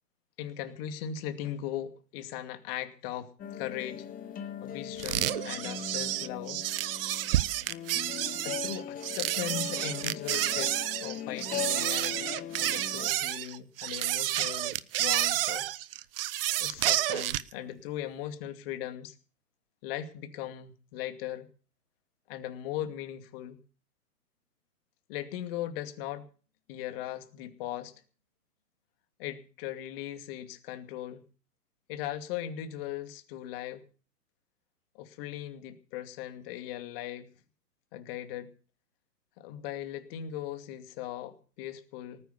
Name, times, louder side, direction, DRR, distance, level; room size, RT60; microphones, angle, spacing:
voice 1, 0.4-4.1 4.6-6.6 8.2-10.7 11.0-15.7 16.6-19.1 19.8-21.5 22.3-23.6 25.1-26.3 26.7-27.9 29.2-31.2 31.9-33.8 34.9-37.3 37.9-38.5 39.4-42.2, left 11 dB, 35° left, 8 dB, 2.5 m, -39 dB
sound 1, 3.4-13.1, left 8 dB, 15° left, 1.7 m, -39 dB
sound 2, 5.0-17.5, right 14 dB, 35° right, 0.8 m, -30 dB
19.0 x 9.8 x 6.9 m, 0.40 s
figure-of-eight pair, 120°, 48 cm